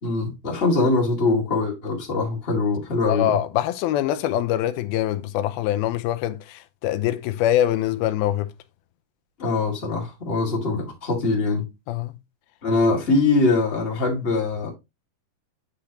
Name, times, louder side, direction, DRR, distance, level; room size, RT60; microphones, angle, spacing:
voice 1, 0.0-3.3 9.4-11.7 12.6-14.7, left 3 dB, 20° left, 1.8 m, -22 dB
voice 2, 3.1-8.5 11.9-12.2, left 12 dB, 90° left, 2.6 m, -24 dB
8.6 x 5.0 x 2.9 m
omnidirectional pair, 4.2 m